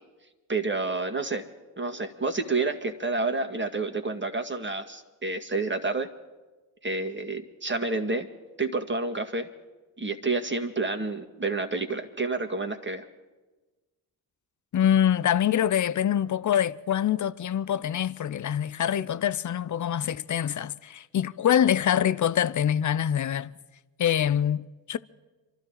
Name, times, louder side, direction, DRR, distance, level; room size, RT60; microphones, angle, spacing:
voice 1, 0.5-1.5 1.8-6.1 6.8-8.3 8.6-9.5 10.0-13.0, right 3 dB, 25° right, 2.0 m, -29 dB
voice 2, 14.7-23.5 24.0-25.0, left 10 dB, 40° left, 0.7 m, -25 dB
27.5 x 12.5 x 4.0 m
hypercardioid pair, 40°, 48 cm